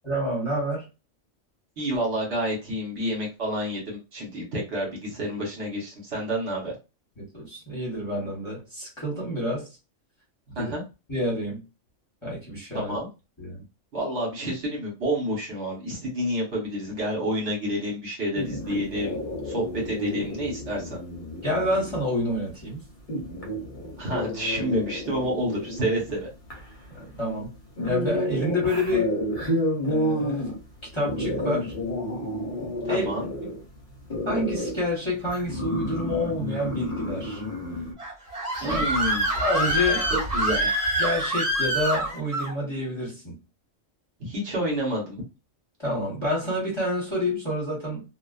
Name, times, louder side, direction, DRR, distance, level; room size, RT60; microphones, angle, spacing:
voice 1, 0.0-0.8 7.2-9.7 10.5-10.7 11.1-11.6 12.2-12.9 13.4-13.6 21.4-22.8 26.9-27.5 27.8-29.1 29.8-30.4 30.9-31.7 32.9-33.1 33.4-33.5 34.2-37.4 38.6-38.8 39.4-40.1 41.0-43.4 45.8-48.0, left 1 dB, 25° left, -6 dB, 1.0 m, -28 dB
voice 2, 1.8-6.7 10.6-10.8 12.7-13.1 13.9-19.2 19.4-21.0 24.0-26.3 32.6-33.3 38.6-39.4 40.1-40.7 44.2-45.2, equal, 65° right, -2 dB, 1.3 m, -29 dB
sound 1, 18.3-37.9, equal, 45° left, 0.8 m, -31 dB
Screaming, 38.0-42.5, right 1 dB, 30° right, 1.0 m, -25 dB
2.4 x 2.4 x 2.3 m, 0.28 s
omnidirectional pair, 1.3 m